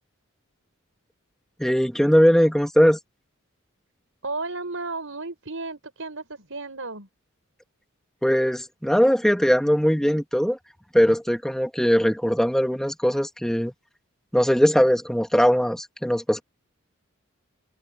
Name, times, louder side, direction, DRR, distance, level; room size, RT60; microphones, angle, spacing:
voice 1, 1.6-3.0 8.2-10.6 10.9-13.7 14.3-16.4, equal, ahead, 1.9 m, -20 dB
voice 2, 4.2-7.1, right 3 dB, 70° right, 5.4 m, -33 dB
head